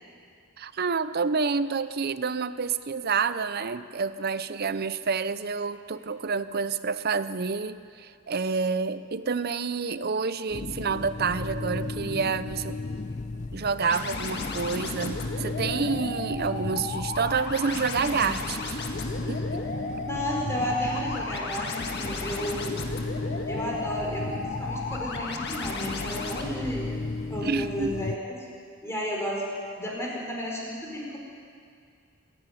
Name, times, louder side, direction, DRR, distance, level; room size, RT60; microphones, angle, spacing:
voice 1, 0.6-12.8 13.5-18.8 19.3-19.6 27.4-27.9, right 5 dB, 45° right, 14 dB, 0.6 m, -28 dB
sound 1, 10.5-28.2, left 3 dB, 35° left, 0.5 m, -35 dB
sound 2, 13.8-26.4, left 3 dB, 50° left, 1.8 m, -35 dB
voice 2, 20.1-22.8 23.5-26.9 27.3-28.5 28.8-29.4 29.8-31.2, equal, 10° left, -3 dB, 4.4 m, -32 dB
26.5 x 11.0 x 9.9 m, 2.3 s
head